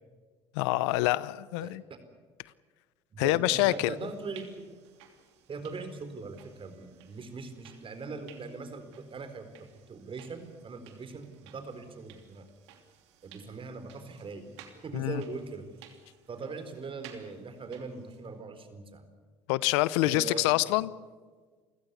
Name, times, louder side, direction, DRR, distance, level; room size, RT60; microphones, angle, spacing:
voice 1, 0.5-1.8 3.2-3.9 14.9-15.2 19.5-20.9, left 18 dB, 80° left, 19 dB, 0.7 m, -26 dB
voice 2, 1.6-2.0 3.1-4.8 5.5-9.5 9.9-12.5 13.2-14.5 14.8-15.7 16.3-19.0 20.0-20.5, right 4 dB, 40° right, 10 dB, 4.2 m, -41 dB
sound 1, 3.4-18.4, right 9 dB, 85° right, 2.9 m, -57 dB
28.5 x 16.0 x 8.2 m, 1.5 s
hypercardioid pair, 70°, 14 cm